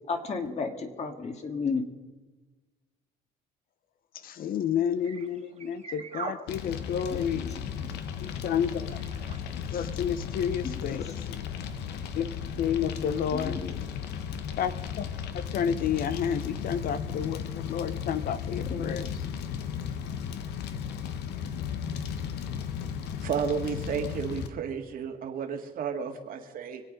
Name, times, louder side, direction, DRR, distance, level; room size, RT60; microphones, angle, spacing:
voice 1, 0.1-1.8 7.1-7.9 10.6-11.0 13.3-13.8 18.7-19.1, left 4 dB, 40° left, 6 dB, 2.0 m, -34 dB
voice 2, 4.2-7.5 8.2-9.0 9.7-11.4 12.2-12.3 12.6-13.6 14.6-15.1 15.3-19.1, left 8 dB, 60° left, 13 dB, 0.8 m, -30 dB
sound 1, 4.7-14.1, right 7 dB, 40° right, 1.9 m, -47 dB
Fire, 6.5-24.5, left 8 dB, 80° left, 1.1 m, -35 dB
voice 3, 23.2-26.8, right 7 dB, 55° right, 4 dB, 1.9 m, -32 dB
25.0 x 8.4 x 5.2 m, 1.2 s
cardioid pair, 110°, 17 cm